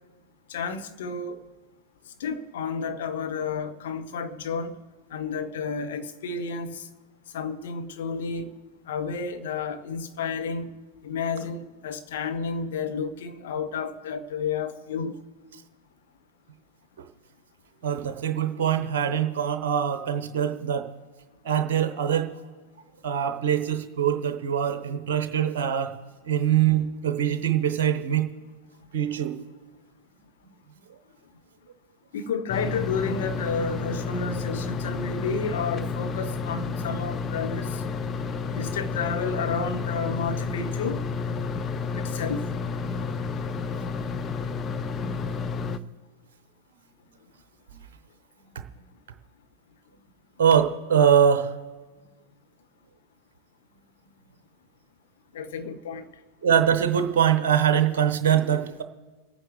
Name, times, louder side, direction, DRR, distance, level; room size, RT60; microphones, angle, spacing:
voice 1, 0.5-1.4 2.2-4.8 5.1-6.9 7.3-8.5 8.9-10.7 11.0-15.1 32.1-37.8 38.5-41.0 41.9-42.5 55.3-56.1, left 5 dB, 55° left, 1.1 m, -31 dB
voice 2, 17.8-20.9 21.4-22.3 23.0-25.9 26.3-28.3 28.9-29.4 50.4-51.5 56.4-58.8, right 9 dB, 55° right, 0.9 m, -23 dB
sound 1, 32.5-45.8, left 4 dB, 25° left, 0.6 m, -31 dB
26.5 x 9.3 x 3.2 m
figure-of-eight pair, 90°, 0 cm